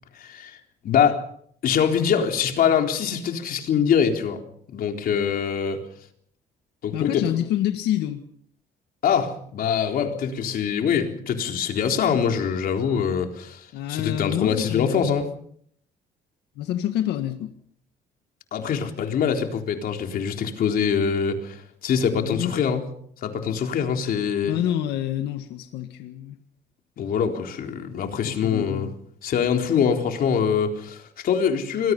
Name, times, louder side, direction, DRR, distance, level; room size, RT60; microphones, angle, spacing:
voice 1, 0.2-0.6 0.8-1.3 1.6-4.4 4.7-5.8 6.8-7.2 9.0-15.3 18.5-22.8 23.2-24.6 27.0-28.9 29.2-31.9, left 7 dB, 60° left, 4 dB, 3.9 m, -24 dB
voice 2, 6.9-8.2 13.7-15.3 16.6-17.5 22.2-22.8 24.4-26.4 28.2-28.9, left 11 dB, 80° left, 7 dB, 1.8 m, -27 dB
27.5 x 21.5 x 5.5 m, 0.63 s
cardioid pair, 110°, 17 cm